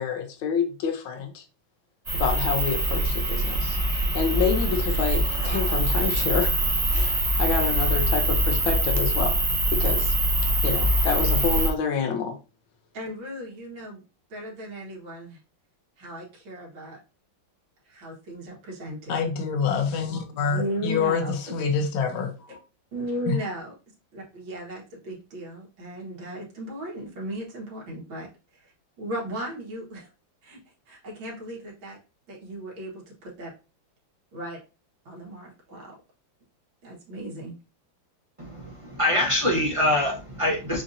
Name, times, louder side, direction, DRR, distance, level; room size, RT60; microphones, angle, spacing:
voice 1, 0.0-1.4 2.1-3.8 4.1-6.6 6.9-9.4 9.7-10.1 10.6-12.4 19.1-22.6 23.3-23.4, left 6 dB, 85° left, 1.5 m, -27 dB
sound 1, 2.1-11.7, right 1 dB, 25° right, 1.2 m, -23 dB
voice 2, 12.9-14.0 14.3-15.4 16.0-17.0 17.9-19.2 20.5-21.6 22.5-22.6 22.9-23.7 24.1-28.3 28.5-28.7 29.0-30.1 30.4-30.6 30.9-32.0 32.3-33.5 34.3-34.6 35.1-36.0 36.8-37.6, right 1 dB, 85° right, 2.1 m, -36 dB
voice 3, 38.4-40.8, left 1 dB, 40° right, 0.4 m, -24 dB
6.9 x 2.5 x 2.7 m
omnidirectional pair, 2.1 m